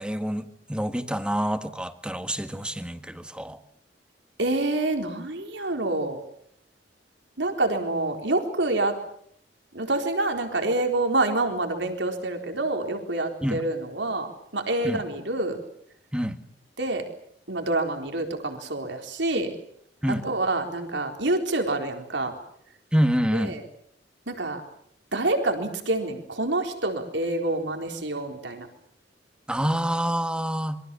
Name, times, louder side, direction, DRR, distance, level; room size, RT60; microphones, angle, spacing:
voice 1, 0.0-3.6 13.4-13.6 14.8-15.0 16.1-16.4 20.0-20.3 22.9-23.6 29.5-30.8, equal, 5° right, 8 dB, 1.7 m, -27 dB
voice 2, 4.4-6.2 7.4-9.0 9.7-15.6 16.8-17.0 17.5-19.5 20.2-22.3 23.3-23.6 24.3-24.6 25.1-28.7, right 2 dB, 90° right, 4 dB, 4.1 m, -27 dB
27.0 x 23.5 x 7.0 m, 0.68 s
head